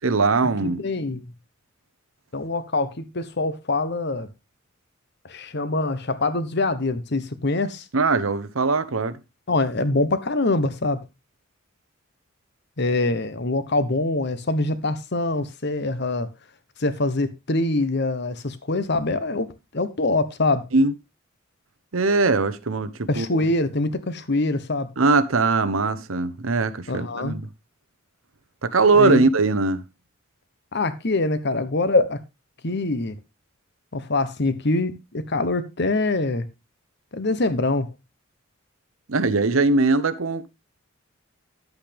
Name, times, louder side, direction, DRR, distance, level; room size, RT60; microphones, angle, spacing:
voice 1, 0.0-0.8 7.9-9.2 20.7-20.9 21.9-23.4 25.0-27.4 28.6-29.9 39.1-40.5, right 3 dB, 85° right, 0.9 m, -21 dB
voice 2, 0.6-1.3 2.3-4.3 5.2-7.9 9.5-11.0 12.8-16.3 16.8-20.6 23.1-24.9 26.9-27.4 28.9-29.2 30.7-32.2 32.6-33.1 33.9-36.5 37.1-37.9, left 2 dB, 55° left, 1.1 m, -24 dB
10.5 x 8.2 x 3.4 m
head